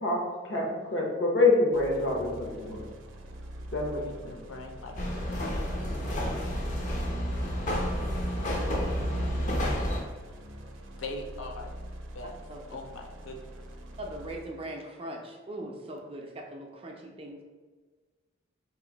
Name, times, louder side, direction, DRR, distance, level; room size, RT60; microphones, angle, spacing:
voice 1, 0.0-2.9 3.7-3.9 4.2-4.3, left 3 dB, 65° left, -1 dB, 0.8 m, -26 dB
sound 1, 1.7-7.3 8.2-14.6, right 1 dB, 85° right, 0.5 m, -45 dB
voice 2, 3.9-5.0 11.0-11.7 12.1-12.3 12.7-13.4, left 2 dB, 85° left, 3 dB, 0.5 m, -40 dB
sound 2, 5.0-10.0, equal, 40° left, 0.5 m, -30 dB
voice 3, 14.0-17.4, right 1 dB, 30° right, 1 dB, 0.4 m, -40 dB
3.0 x 2.5 x 3.8 m, 1.4 s
head